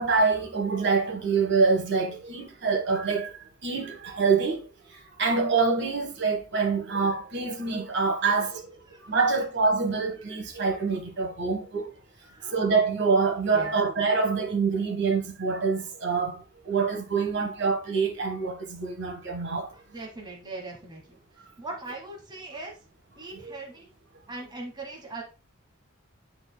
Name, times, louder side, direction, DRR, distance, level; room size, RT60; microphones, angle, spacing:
voice 1, 0.0-11.9 12.4-19.7 21.4-21.5 23.4-23.5, right 4 dB, 50° right, 1.4 m, -26 dB
voice 2, 19.7-21.2 21.6-22.8 23.2-23.9 24.3-25.2, right 2 dB, 20° right, 1.2 m, -40 dB
10.5 x 3.9 x 2.2 m
head